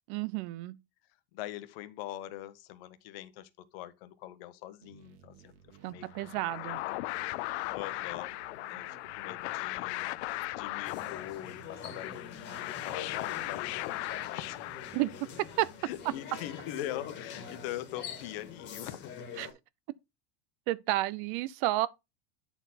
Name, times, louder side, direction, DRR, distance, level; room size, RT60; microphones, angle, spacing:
voice 1, 0.1-0.8 5.8-6.8 14.9-15.1 15.4-15.7 19.4-19.5 20.7-21.9, right 17 dB, 45° right, 0.4 m, -31 dB
voice 2, 1.3-6.3 6.6-6.8 7.4-8.4 8.7-14.6 15.8-19.5, left 13 dB, 60° left, 1.0 m, -43 dB
sound 1, 4.8-16.1, right 8 dB, 65° right, 1.6 m, -58 dB
sound 2, 6.1-15.5, left 19 dB, 75° left, 0.5 m, -38 dB
sound 3, 10.8-19.5, left 7 dB, 35° left, 1.8 m, -44 dB
8.9 x 4.4 x 4.1 m
supercardioid pair, 150°, 33 cm